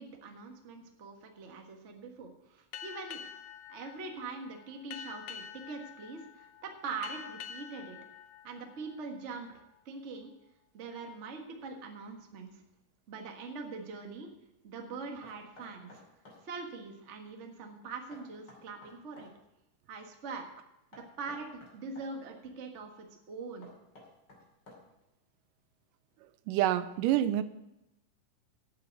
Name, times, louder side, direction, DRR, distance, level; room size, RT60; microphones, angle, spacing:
voice 1, 0.0-3.2 3.7-8.0 8.4-9.5 9.8-10.3 10.7-12.6 13.1-14.3 14.6-15.9 16.4-19.3 19.9-20.5 20.9-23.7, right 4 dB, 50° right, 3 dB, 0.8 m, -43 dB
Boat Water vehicle, 2.7-9.8, left 8 dB, 80° left, 1.3 m, -47 dB
Knock, 15.2-16.4 18.1-19.3 20.9-22.1 23.6-25.1, left 2 dB, 35° left, 3.1 m, -54 dB
voice 2, 26.5-27.4, right 12 dB, 85° right, 13 dB, 2.2 m, -27 dB
9.3 x 7.8 x 8.0 m, 0.90 s
omnidirectional pair, 3.7 m